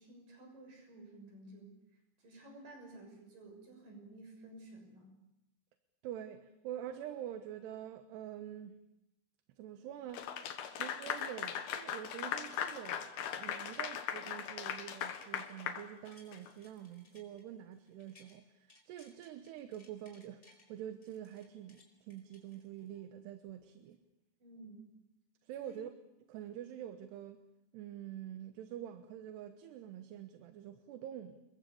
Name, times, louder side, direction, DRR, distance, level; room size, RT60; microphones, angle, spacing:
voice 1, 0.0-1.8 2.2-5.1 24.4-24.9 25.6-25.7, right 2 dB, 50° right, 8.0 m, -53 dB
voice 2, 6.0-8.8 9.6-24.0 25.4-25.9 26.3-27.4 27.7-31.4, right 11 dB, 80° right, 3.1 m, -46 dB
Clapping / Applause, 10.1-16.5, left 8 dB, 65° left, 3.4 m, -39 dB
sound 1, 14.7-15.6 15.9-18.4 18.7-20.7 21.0-23.0 23.5-23.6, left 2 dB, 15° left, 4.5 m, -64 dB
29.5 x 22.5 x 7.1 m
omnidirectional pair, 4.9 m